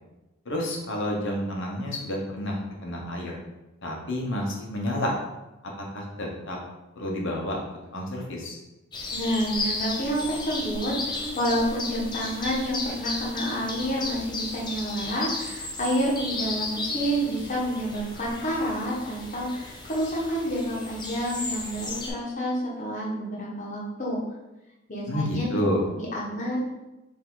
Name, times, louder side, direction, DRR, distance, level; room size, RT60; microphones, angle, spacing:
voice 1, 0.4-3.4 3.8-5.1 5.9-6.6 7.0-7.6 7.9-8.6 25.1-25.8, left 1 dB, 60° left, -1 dB, 1.0 m, -29 dB
sound 1, 8.9-22.1, left 2 dB, 20° left, 0.6 m, -34 dB
voice 2, 9.1-24.2 24.9-25.5 26.1-26.6, equal, 35° left, -5 dB, 1.3 m, -29 dB
4.7 x 2.9 x 3.8 m, 1.0 s
head